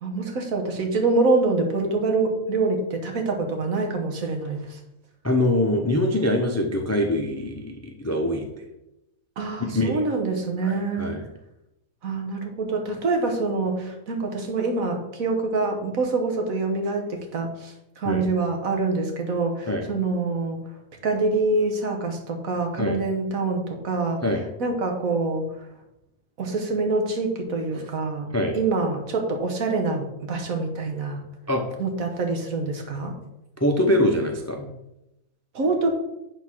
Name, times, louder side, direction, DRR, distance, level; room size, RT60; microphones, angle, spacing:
voice 1, 0.0-4.8 9.4-11.2 12.0-20.6 21.0-24.2 24.6-25.6 26.4-28.3 28.5-31.2 31.8-33.1 35.5-35.9, right 3 dB, 65° right, 3 dB, 1.7 m, -25 dB
voice 2, 5.2-8.4 9.6-10.0 10.6-11.2 18.1-18.3 19.7-19.9 22.8-23.0 24.2-24.4 28.3-28.6 31.5-31.6 33.6-34.7, left 1 dB, 20° left, 3 dB, 0.5 m, -23 dB
8.0 x 4.0 x 6.1 m, 0.89 s
omnidirectional pair, 1.6 m